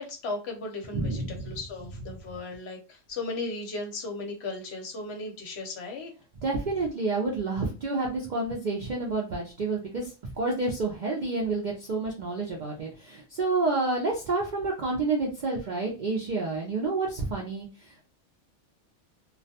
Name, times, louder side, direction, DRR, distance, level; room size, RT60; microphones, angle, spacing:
voice 1, 0.0-6.1, left 3 dB, 65° left, 2 dB, 0.8 m, -36 dB
voice 2, 0.9-1.5 6.4-10.1 10.4-18.0, right 3 dB, 60° right, -1 dB, 0.4 m, -29 dB
2.3 x 2.1 x 2.7 m, 0.32 s
omnidirectional pair, 1.3 m